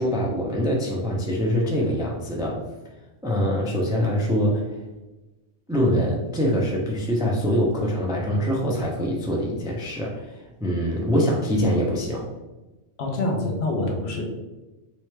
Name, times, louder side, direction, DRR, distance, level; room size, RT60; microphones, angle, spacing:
voice 1, 0.0-2.6 3.2-4.7 5.7-12.3, equal, 5° right, -2 dB, 0.3 m, -24 dB
voice 2, 13.0-14.2, left 2 dB, 70° left, 1 dB, 1.0 m, -26 dB
3.3 x 3.1 x 3.2 m, 1.1 s
omnidirectional pair, 1.2 m